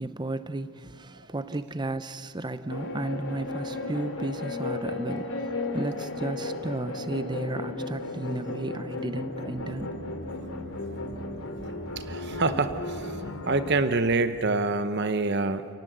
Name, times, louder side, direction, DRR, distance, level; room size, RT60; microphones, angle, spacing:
voice 1, 0.0-5.5 5.7-10.0, right 2 dB, 20° right, 0.7 m, -33 dB
sound 1, 2.7-13.7, left 2 dB, 75° left, 2.7 m, -34 dB
voice 2, 12.0-13.2 13.4-15.7, right 3 dB, 50° right, 0.9 m, -26 dB
28.5 x 18.0 x 8.0 m
head